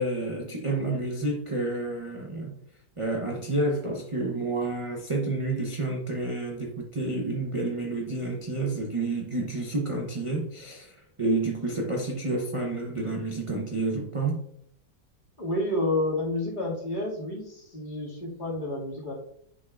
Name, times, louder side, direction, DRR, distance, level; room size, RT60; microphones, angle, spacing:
voice 1, 0.0-2.6 3.0-14.4, right 2 dB, 30° right, 0.5 m, -29 dB
voice 2, 15.4-19.1, left 1 dB, 25° left, 2.3 m, -30 dB
7.7 x 6.2 x 2.4 m
omnidirectional pair, 1.9 m